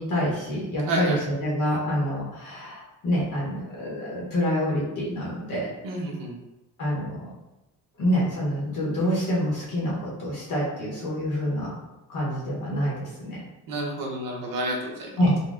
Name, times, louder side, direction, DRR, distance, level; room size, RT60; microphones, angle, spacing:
voice 1, 0.0-5.7 6.8-7.2 8.0-11.7 12.1-13.4 15.2-15.4, equal, 55° left, -5 dB, 0.9 m, -27 dB
voice 2, 0.9-1.2 5.8-6.3 13.7-15.1, right 1 dB, 55° right, -1 dB, 0.9 m, -29 dB
3.9 x 2.2 x 2.4 m, 0.98 s
cardioid pair, 130°, 39 cm